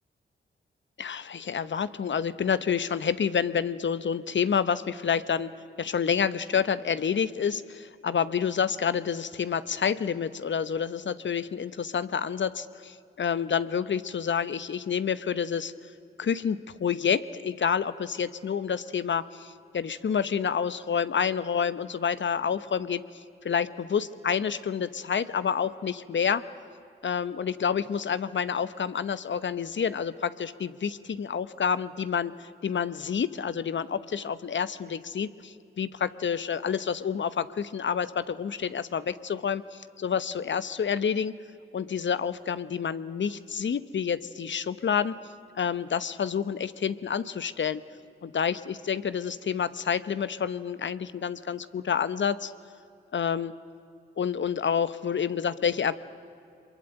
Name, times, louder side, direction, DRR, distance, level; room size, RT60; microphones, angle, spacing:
voice 1, 1.0-5.5 5.8-15.7 16.2-26.4 27.0-41.3 41.7-45.1 45.6-47.8 48.2-52.5 53.1-53.5 54.2-56.0, left 7 dB, 60° left, 15 dB, 0.9 m, -28 dB
24.0 x 22.5 x 9.0 m, 2.6 s
cardioid pair, 45°, 21 cm